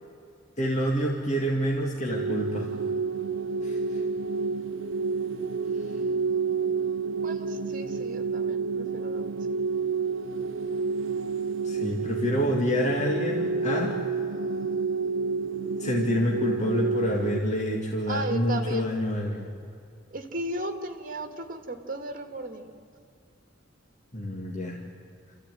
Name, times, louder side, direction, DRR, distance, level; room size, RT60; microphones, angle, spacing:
voice 1, 0.6-2.7 3.6-4.0 11.6-14.0 15.8-19.5 24.1-24.8, equal, 40° left, -1 dB, 2.1 m, -27 dB
sound 1, 2.1-17.4, right 4 dB, 85° right, 0.7 m, -29 dB
voice 2, 7.2-9.3 18.1-18.9 20.1-22.7, right 1 dB, 45° right, 6 dB, 2.1 m, -35 dB
27.5 x 15.0 x 9.3 m, 2.5 s
head